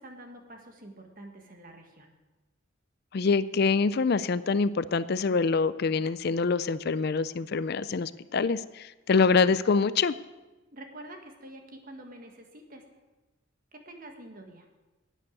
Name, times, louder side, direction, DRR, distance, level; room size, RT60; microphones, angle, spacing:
voice 1, 0.0-2.1 10.7-12.8 13.7-14.7, right 1 dB, 45° right, 4 dB, 1.7 m, -47 dB
voice 2, 3.1-10.1, left 4 dB, 55° left, 15 dB, 0.4 m, -25 dB
11.0 x 9.3 x 8.3 m, 1.1 s
head